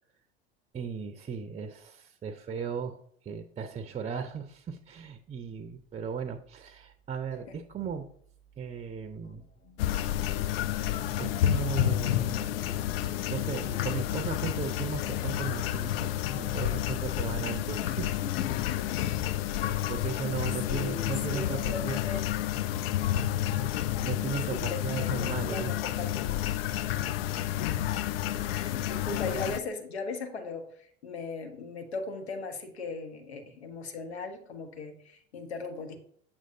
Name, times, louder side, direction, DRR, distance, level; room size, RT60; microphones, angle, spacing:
voice 1, 0.7-8.1 8.6-9.4 11.2-12.6 13.3-18.1 19.0-19.1 19.9-22.0 24.0-25.7 26.7-27.0, right 6 dB, 20° right, 8 dB, 0.6 m, -36 dB
sound 1, 9.2-21.4, left 7 dB, 30° left, 0.7 m, -47 dB
sound 2, 9.8-29.6, left 12 dB, 65° left, 0.4 m, -30 dB
voice 2, 20.7-22.3 24.5-26.4 26.8-27.2 27.9-28.1 28.4-36.0, left 3 dB, 80° left, 4 dB, 1.2 m, -38 dB
7.2 x 6.3 x 2.7 m, 0.63 s
figure-of-eight pair, 70°, 32 cm